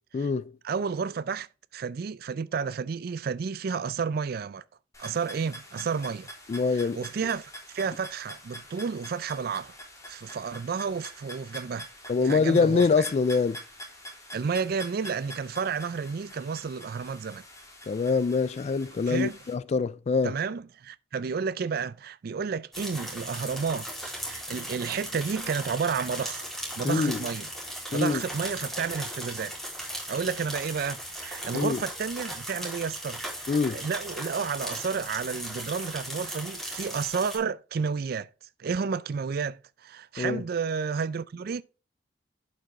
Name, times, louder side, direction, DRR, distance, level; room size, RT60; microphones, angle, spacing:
voice 1, 0.1-0.5 6.5-7.0 12.1-13.6 17.9-20.3 26.8-27.2 27.9-28.2 31.5-31.8 33.5-33.8 40.2-40.4, left 4 dB, 35° left, 0.3 m, -24 dB
voice 2, 0.6-1.5 1.7-4.6 5.0-6.3 6.7-9.7 10.1-11.9 12.2-13.1 14.3-17.4 19.1-19.4 20.2-26.4 26.8-27.5 27.9-29.5 30.1-38.3 38.6-41.6, right 5 dB, 55° right, 0.4 m, -31 dB
sound 1, 4.9-19.5, equal, 20° left, 2.9 m, -45 dB
sound 2, 22.7-37.4, equal, ahead, 3.5 m, -37 dB
11.5 x 5.4 x 3.5 m
head